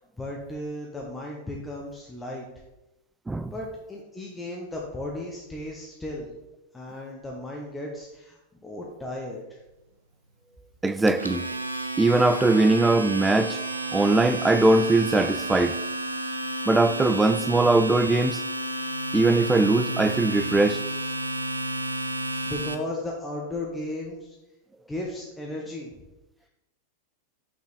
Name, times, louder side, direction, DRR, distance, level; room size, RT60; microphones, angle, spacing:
voice 1, 0.2-2.4 3.5-6.3 6.7-9.6 22.4-24.3 24.9-25.9, left 1 dB, 10° left, 1.0 m, -35 dB
voice 2, 10.8-11.5 12.0-13.6 13.9-15.8 16.7-18.4 19.1-20.8, right 2 dB, 10° right, 0.3 m, -21 dB
Domestic sounds home sounds, 10.9-22.7, right 1 dB, 85° right, 0.5 m, -31 dB
5.9 x 5.9 x 4.2 m
figure-of-eight pair, 90°, 0 cm